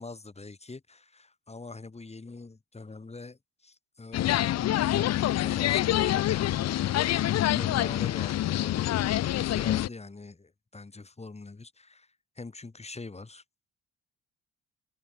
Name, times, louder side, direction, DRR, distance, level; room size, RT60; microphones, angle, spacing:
voice 1, 0.0-6.7 7.5-13.4, left 3 dB, 20° left, 3.1 m, -43 dB
sound 1, 4.1-9.9, left 13 dB, 60° left, 0.6 m, -26 dB
cardioid pair, 90°, 30 cm